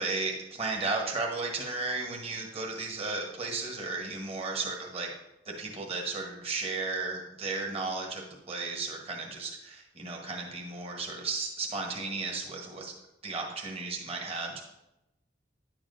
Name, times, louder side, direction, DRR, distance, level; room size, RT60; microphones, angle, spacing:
voice 1, 0.0-5.1 5.6-12.9 13.2-14.6, right 3 dB, 35° right, 0 dB, 1.1 m, -34 dB
9.8 x 7.3 x 2.5 m, 0.91 s
head